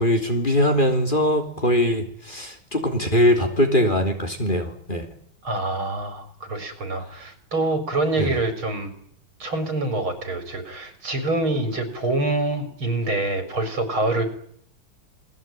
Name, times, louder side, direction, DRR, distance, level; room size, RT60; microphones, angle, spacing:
voice 1, 0.0-5.0 8.2-8.3, left 1 dB, 25° left, 4 dB, 3.4 m, -21 dB
voice 2, 5.4-8.9 9.4-14.3, right 2 dB, 85° right, 8 dB, 5.4 m, -26 dB
28.5 x 20.5 x 9.1 m, 0.64 s
omnidirectional pair, 2.2 m